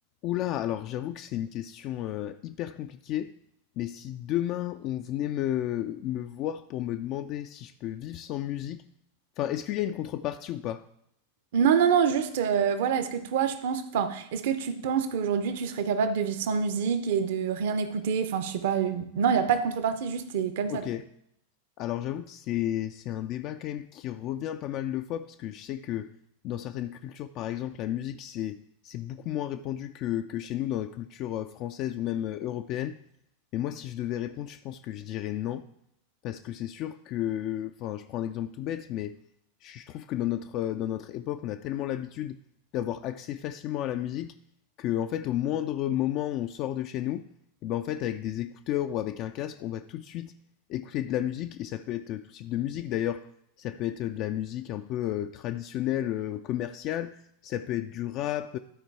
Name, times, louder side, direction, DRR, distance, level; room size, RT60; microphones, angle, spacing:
voice 1, 0.2-3.3 3.8-8.8 9.4-10.8 20.7-21.0 21.8-26.1 26.4-28.6 28.8-33.0 33.5-35.6 36.2-39.1 39.6-42.4 42.7-44.3 44.8-47.2 47.6-50.3 50.7-53.2 53.6-58.6, left 12 dB, 40° left, 8 dB, 0.4 m, -32 dB
voice 2, 11.5-20.8, right 7 dB, 55° right, 10 dB, 0.8 m, -26 dB
12.5 x 4.5 x 4.5 m, 0.74 s
figure-of-eight pair, 90°, 0 cm